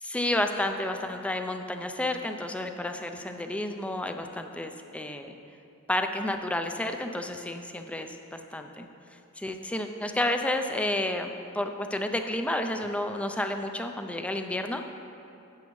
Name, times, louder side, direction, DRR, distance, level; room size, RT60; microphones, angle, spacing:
voice 1, 0.0-5.3 5.9-8.9 9.4-14.8, left 1 dB, 5° left, 6 dB, 0.4 m, -31 dB
10.5 x 8.3 x 3.1 m, 2.8 s
head